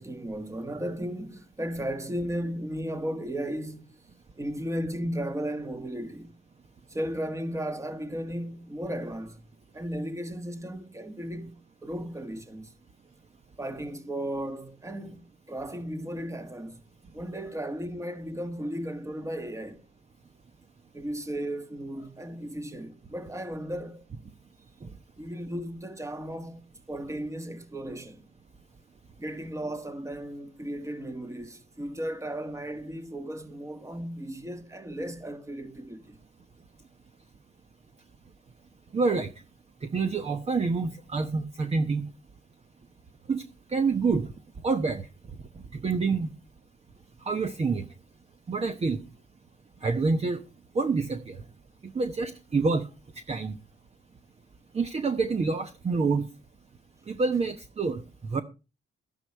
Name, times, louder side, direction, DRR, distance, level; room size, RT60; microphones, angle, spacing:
voice 1, 0.0-4.0 4.4-6.3 6.9-9.4 9.7-11.5 11.8-12.7 13.6-16.8 17.1-19.8 20.9-24.0 25.2-26.6 26.9-28.3 29.2-36.2, equal, 15° right, 1.6 m, -35 dB
voice 2, 38.9-39.3 39.8-42.1 43.3-43.4 43.7-44.3 44.6-45.1 45.7-46.3 47.2-47.8 48.5-49.0 49.8-50.4 50.7-51.4 51.8-52.9 53.3-53.6 54.7-56.3 57.1-58.4, right 4 dB, 30° right, 1.0 m, -27 dB
12.0 x 9.8 x 4.4 m
cardioid pair, 90°, 20 cm